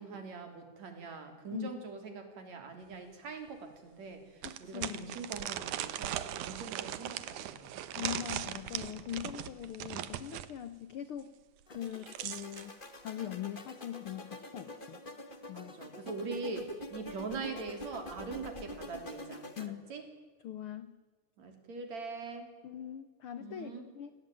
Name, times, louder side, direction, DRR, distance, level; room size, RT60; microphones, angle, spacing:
voice 1, 0.0-7.7 15.5-20.0 21.4-22.5 23.4-23.8, right 4 dB, 60° right, 6 dB, 4.5 m, -42 dB
sound 1, 2.9-3.0 3.5-3.6 4.4-10.5 11.7-12.7, right 12 dB, 75° right, 2.5 m, -39 dB
voice 2, 4.4-5.2 7.9-11.3 11.7-12.8 13.0-15.0 15.5-15.7 19.6-19.8 20.4-20.9 22.6-24.1, left 11 dB, 70° left, 13 dB, 1.3 m, -41 dB
sound 2, 11.7-19.7, left 1 dB, 25° left, 1.2 m, -47 dB
28.5 x 18.5 x 9.1 m, 1.4 s
omnidirectional pair, 3.6 m